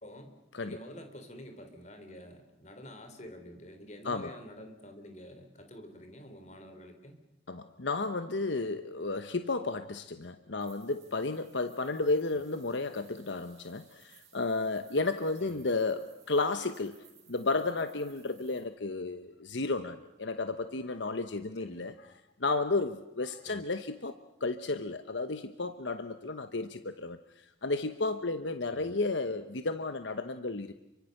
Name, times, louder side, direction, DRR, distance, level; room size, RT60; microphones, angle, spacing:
voice 1, 0.0-0.3 0.6-7.2 12.3-12.4 15.4-15.7 21.6-21.9 23.4-23.6 28.7-28.9, equal, 40° left, 6 dB, 3.7 m, -48 dB
voice 2, 7.5-21.9 22.4-27.2 27.6-30.7, left 3 dB, 75° left, 10 dB, 1.0 m, -33 dB
sound 1, 10.6-18.6, right 8 dB, 35° right, 6.9 m, -62 dB
29.5 x 24.0 x 6.6 m, 0.91 s
head